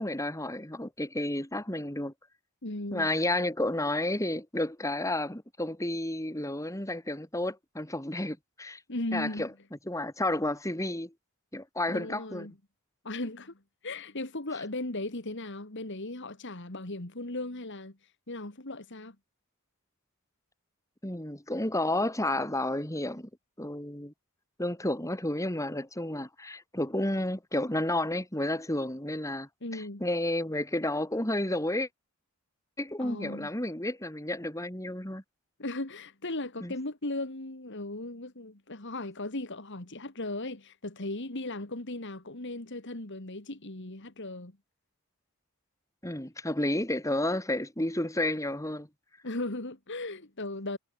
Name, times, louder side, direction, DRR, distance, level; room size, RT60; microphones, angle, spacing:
voice 1, 0.0-2.1 2.9-8.8 9.1-9.5 9.9-11.1 11.5-12.5 21.0-23.3 23.6-24.1 24.6-31.9 32.8-35.2 36.6-36.7 46.0-48.9, left 1 dB, 15° left, 3.1 m, -31 dB
voice 2, 2.6-3.1 8.9-9.5 11.9-12.6 13.0-18.0 18.3-19.2 29.6-30.0 33.0-33.5 35.6-44.5 49.2-50.8, left 2 dB, 55° left, 2.4 m, -37 dB
head